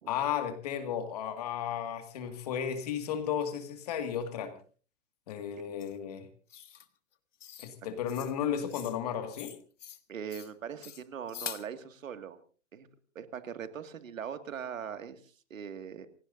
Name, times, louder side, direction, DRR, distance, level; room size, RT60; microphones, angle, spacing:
voice 1, 0.1-4.5 5.3-6.3 7.6-9.5, left 8 dB, 30° left, 8 dB, 2.0 m, -34 dB
sound 1, 5.8-5.9 6.5-6.9 7.4-7.7 8.1-8.3 8.7-9.0 9.3-10.0 10.3-10.5 10.8-11.7, left 9 dB, 65° left, 1.5 m, -44 dB
voice 2, 10.1-12.4 12.7-12.9 13.2-16.1, right 8 dB, 85° right, 9 dB, 2.2 m, -41 dB
28.5 x 17.5 x 2.6 m, 0.39 s
hypercardioid pair, 175°, 39 cm